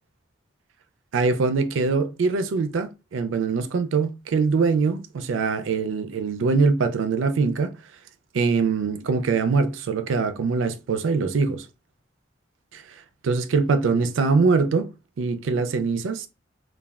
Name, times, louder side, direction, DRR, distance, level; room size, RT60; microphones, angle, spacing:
voice 1, 1.1-7.7 8.3-11.7 12.7-12.8 13.2-14.9 15.2-16.3, right 4 dB, 90° right, 0.4 m, -23 dB
3.2 x 2.2 x 2.3 m
head